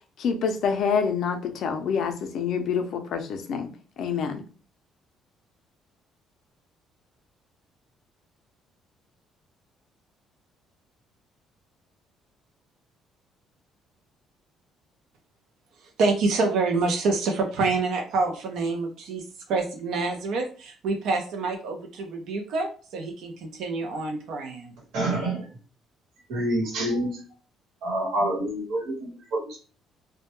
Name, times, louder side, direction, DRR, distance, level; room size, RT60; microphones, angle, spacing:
voice 1, 0.2-3.7 4.0-4.4, left 6 dB, 55° left, 6 dB, 0.4 m, -27 dB
voice 2, 16.0-19.2 19.5-24.7, right 3 dB, 70° right, 3 dB, 0.5 m, -27 dB
voice 3, 24.9-25.5 26.3-27.2 27.8-29.6, right 1 dB, 90° right, -1 dB, 1.1 m, -27 dB
2.1 x 2.1 x 2.9 m, 0.37 s
cardioid pair, 155°, 0 cm